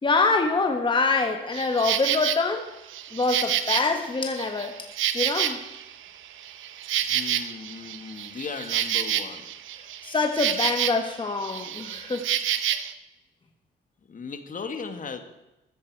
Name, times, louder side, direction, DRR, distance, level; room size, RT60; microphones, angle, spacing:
voice 1, 0.0-2.7 3.1-4.8 5.1-5.6 10.0-12.3, left 3 dB, 25° left, 5 dB, 1.4 m, -25 dB
Insect, 1.5-2.4 2.9-5.9 6.3-11.1 11.4-12.9, right 11 dB, 80° right, 1.0 m, -28 dB
voice 2, 7.1-9.5 14.1-15.2, left 5 dB, 40° left, 8 dB, 1.7 m, -37 dB
14.5 x 13.5 x 4.7 m, 0.97 s
cardioid pair, 90°, 20 cm